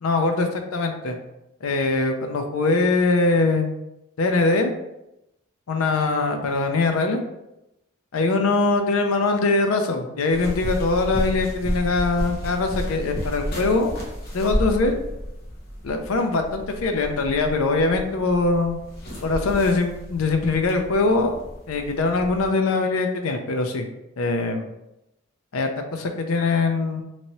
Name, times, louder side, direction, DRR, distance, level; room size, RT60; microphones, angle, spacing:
voice 1, 0.0-1.2 1.6-3.7 4.2-4.7 5.7-7.2 8.1-13.9 14.3-14.9 15.8-18.8 19.2-21.4 21.7-23.9 24.2-24.7 25.5-27.0, left 3 dB, 85° left, 5 dB, 0.5 m, -22 dB
sound 1, 10.3-22.5, equal, 45° left, 0.8 m, -32 dB
3.0 x 2.7 x 2.9 m, 0.89 s
head